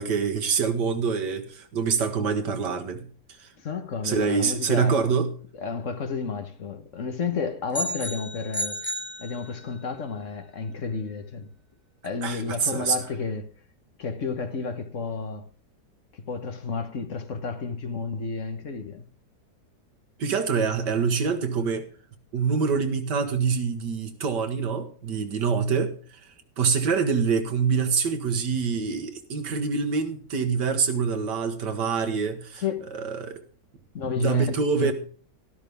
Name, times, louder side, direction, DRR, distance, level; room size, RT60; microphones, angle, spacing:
voice 1, 0.0-3.1 3.4-3.5 4.0-5.3 12.2-13.0 20.2-21.9 22.3-33.4 34.2-34.9, right 5 dB, 80° right, 2.0 m, -25 dB
voice 2, 3.6-5.0 5.6-8.8 9.2-11.5 12.0-13.5 14.0-15.4 16.1-19.0 32.6-32.9 33.9-34.4 34.8-34.9, left 5 dB, 50° left, 1.4 m, -31 dB
sound 1, 7.7-9.9, right 1 dB, 15° left, 0.4 m, -33 dB
12.5 x 12.5 x 3.5 m
omnidirectional pair, 1.8 m